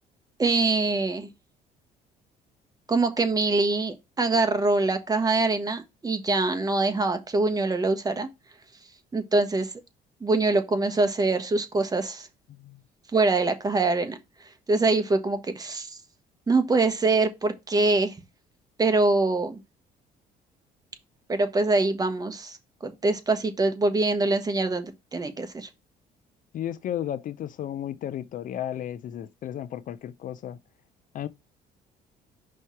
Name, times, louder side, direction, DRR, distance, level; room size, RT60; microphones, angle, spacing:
voice 1, 0.4-1.3 2.9-8.3 9.1-9.7 10.2-12.3 13.1-14.2 14.7-16.0 16.5-18.1 18.8-19.6 21.3-22.6 22.8-25.7, right 3 dB, 20° right, 1.2 m, -24 dB
voice 2, 12.5-12.8 26.5-30.6 31.1-31.3, left 11 dB, 50° left, 0.5 m, -34 dB
5.5 x 3.2 x 5.6 m
cardioid pair, 110°, 17 cm